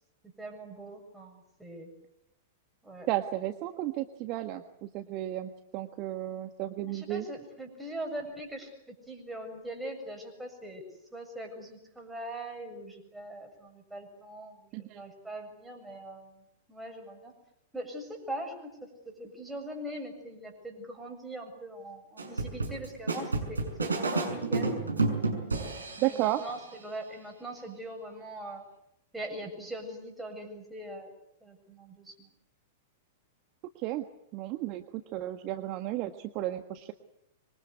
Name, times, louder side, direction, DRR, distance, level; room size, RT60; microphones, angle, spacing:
voice 1, 0.2-1.9 2.8-3.1 6.9-17.3 17.7-24.8 26.1-28.6 29.1-31.1 31.4-32.3, right 1 dB, 5° right, 3 dB, 7.2 m, -42 dB
voice 2, 3.1-7.2 14.7-15.0 26.0-26.4 33.7-34.0 34.3-34.8 35.1-36.9, right 15 dB, 40° right, 8 dB, 1.5 m, -33 dB
sound 1, 22.2-26.5, right 3 dB, 80° right, 6.2 m, -30 dB
26.0 x 23.5 x 8.3 m, 0.81 s
figure-of-eight pair, 100°, 0 cm